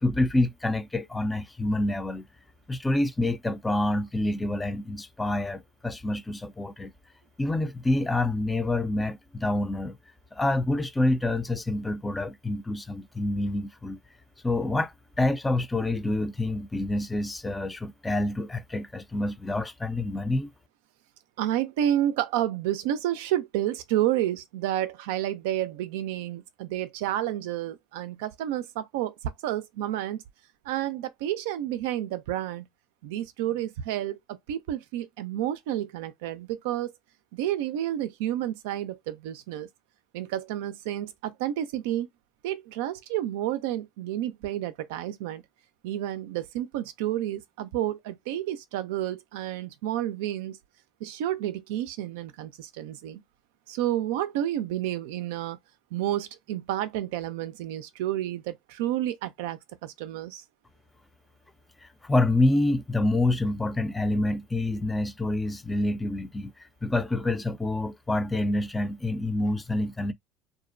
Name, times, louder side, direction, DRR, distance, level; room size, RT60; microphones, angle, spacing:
voice 1, 0.0-2.3 2.7-6.9 7.4-10.0 10.3-14.0 14.4-20.5 61.8-70.1, left 2 dB, 15° left, 0.4 m, -27 dB
voice 2, 21.4-30.2 30.6-32.7 33.0-36.9 37.3-39.7 40.1-42.1 42.4-45.4 45.8-50.6 51.0-53.2 53.7-55.6 55.9-60.4, right 12 dB, 75° right, 0.4 m, -30 dB
2.4 x 2.0 x 2.5 m
hypercardioid pair, 85°, 0 cm